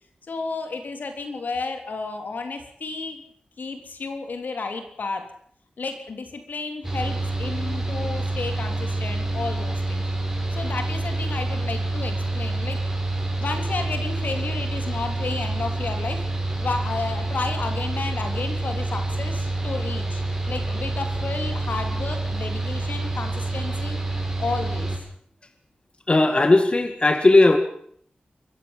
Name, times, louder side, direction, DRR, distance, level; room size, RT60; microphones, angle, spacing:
voice 1, 0.2-3.2 3.6-5.3 5.8-10.1 10.5-12.8 13.4-16.3 16.6-24.0 24.4-25.0, left 3 dB, 75° left, 6 dB, 3.4 m, -32 dB
Mechanical fan, 6.8-25.0, right 2 dB, 10° right, 7.3 m, -27 dB
voice 2, 26.1-27.6, left 2 dB, 35° left, 7 dB, 2.1 m, -17 dB
24.0 x 15.0 x 7.3 m, 0.62 s
wide cardioid pair, 80°, 3 cm